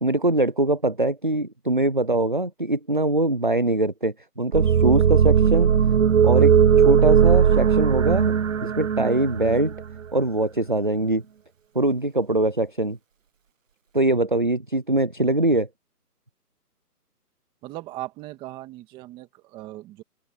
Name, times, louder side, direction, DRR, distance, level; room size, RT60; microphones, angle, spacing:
voice 1, 0.0-5.7 6.2-8.3 8.6-9.7 10.1-11.2 11.7-13.0 13.9-15.7, right 2 dB, 35° right, 0.4 m, -22 dB
sound 1, 4.5-10.0, right 8 dB, 50° right, 1.1 m, -18 dB
voice 2, 17.6-20.0, right 17 dB, 10° right, 1.8 m, -38 dB
open air
hypercardioid pair, 160°, 48 cm